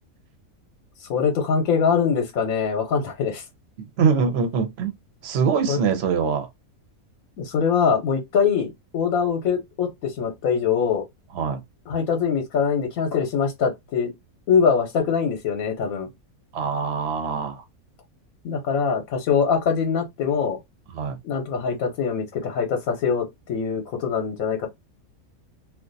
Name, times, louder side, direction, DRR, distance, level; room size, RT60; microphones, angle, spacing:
voice 1, 1.1-3.4 5.7-5.8 7.4-11.0 11.9-14.1 14.5-16.1 18.4-20.6 21.2-24.7, left 6 dB, 75° left, 1.1 m, -23 dB
voice 2, 4.0-4.9 5.2-6.5 11.3-11.6 16.5-17.6 20.9-21.2, right 6 dB, 55° right, 0.9 m, -23 dB
2.5 x 2.4 x 3.8 m
omnidirectional pair, 1.5 m